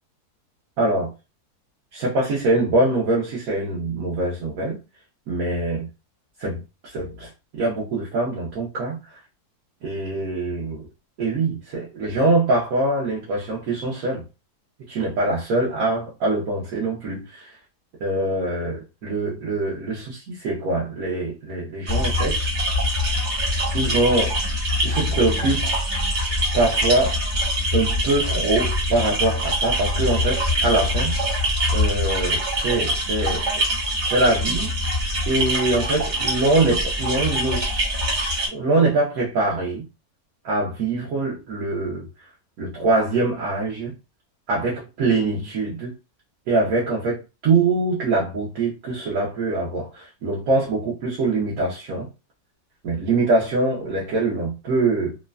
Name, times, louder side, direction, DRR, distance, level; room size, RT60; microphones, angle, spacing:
voice 1, 0.8-1.1 1.9-4.8 5.3-5.9 6.4-7.3 7.6-9.0 9.8-10.9 11.2-14.2 14.9-17.6 18.0-22.5 23.7-24.4 24.8-25.7 26.2-27.2 27.7-31.1 31.7-33.6 34.1-34.7 35.3-39.8 40.4-42.1 42.6-43.9 44.5-45.9 46.5-52.1 52.8-55.2, right 2 dB, 65° right, 1.2 m, -23 dB
sound 1, 21.9-38.5, equal, 40° right, 0.8 m, -24 dB
3.1 x 2.2 x 2.3 m
omnidirectional pair, 1.7 m